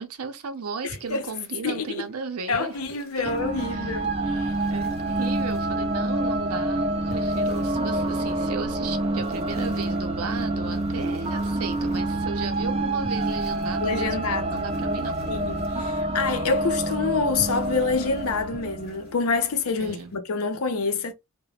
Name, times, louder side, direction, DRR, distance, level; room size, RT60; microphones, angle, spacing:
voice 1, 0.0-2.8 3.2-4.0 4.7-15.2 15.8-15.9 19.8-20.1, right 5 dB, 90° right, 0.6 m, -35 dB
voice 2, 0.8-1.2 1.6-2.1 2.5-4.5 13.8-14.6 15.3-21.1, left 4 dB, 85° left, 0.6 m, -27 dB
sound 1, 0.9-2.1 2.5-3.7 4.4-6.2 7.1-8.4 9.1-12.6 13.0-16.9 17.1-19.1 19.5-20.2, left 1 dB, 45° left, 0.9 m, -47 dB
sound 2, 3.3-19.5, right 1 dB, 25° right, 0.4 m, -27 dB
2.3 x 2.1 x 3.2 m
head